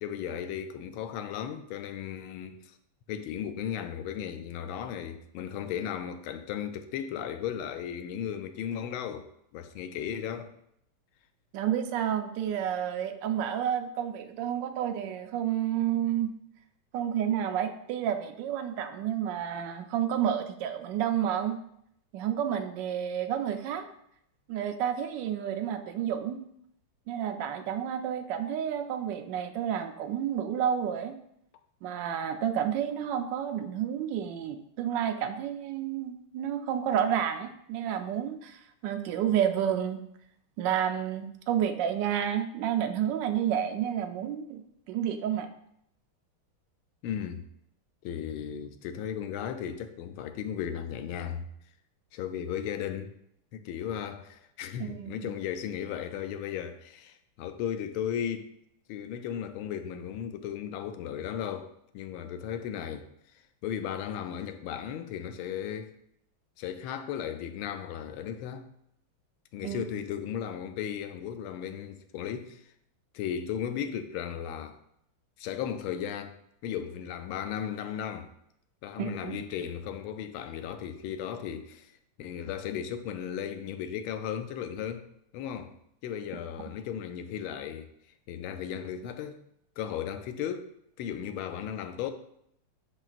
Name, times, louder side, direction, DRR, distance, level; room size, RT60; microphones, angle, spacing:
voice 1, 0.0-2.8 3.1-10.5 47.0-47.4 48.0-51.5 52.1-53.1 53.5-58.5 58.9-63.1 63.6-65.9 66.6-68.7 69.5-72.6 73.1-74.8 75.4-76.4 76.6-78.3 78.8-81.9 82.2-85.1 85.3-85.7 86.0-87.9 88.3-89.4 89.8-90.7 91.0-92.1, left 9 dB, 80° left, 1.4 m, -35 dB
voice 2, 11.5-16.3 16.9-21.6 22.1-23.8 24.5-26.4 27.1-31.1 31.8-40.0 40.6-44.6 44.9-45.5 54.9-55.3 69.6-69.8 79.0-79.4, right 9 dB, 75° right, 1.1 m, -30 dB
6.8 x 5.8 x 2.5 m
omnidirectional pair, 2.3 m